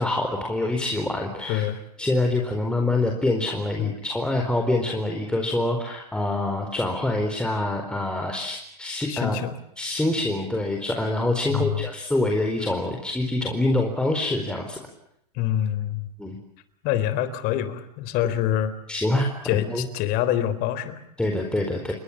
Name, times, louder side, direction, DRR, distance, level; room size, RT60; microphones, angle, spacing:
voice 1, 0.0-1.6 2.0-9.4 9.8-14.8 16.2-16.4 18.9-19.3 19.7-19.8 21.2-21.9, left 2 dB, 5° left, 2 dB, 4.4 m, -25 dB
voice 2, 1.5-1.8 3.8-3.9 9.1-9.5 11.5-11.9 15.3-16.1 16.8-18.7 19.4-21.0, left 11 dB, 45° left, 14 dB, 3.9 m, -26 dB
29.5 x 23.5 x 7.4 m, 0.76 s
hypercardioid pair, 120°, 21 cm